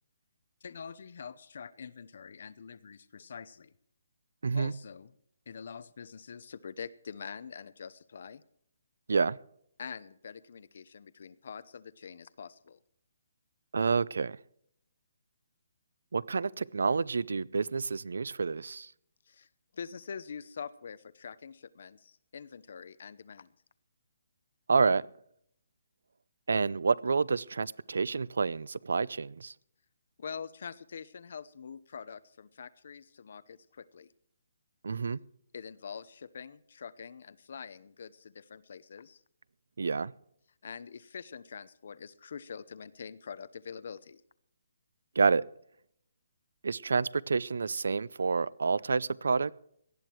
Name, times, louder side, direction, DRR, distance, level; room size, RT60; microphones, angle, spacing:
voice 1, 0.6-3.7 4.5-5.1 5.5-8.4 9.8-12.8 19.3-19.5 19.7-23.5 30.2-34.1 35.5-39.2 40.6-44.2, left 6 dB, 45° left, 0.8 m, -45 dB
voice 2, 13.7-14.4 16.1-18.9 24.7-25.0 26.5-29.5 34.8-35.2 39.8-40.1 45.2-45.4 46.6-49.5, right 4 dB, 75° right, 0.6 m, -28 dB
18.5 x 12.0 x 4.6 m
hypercardioid pair, 180°, 0 cm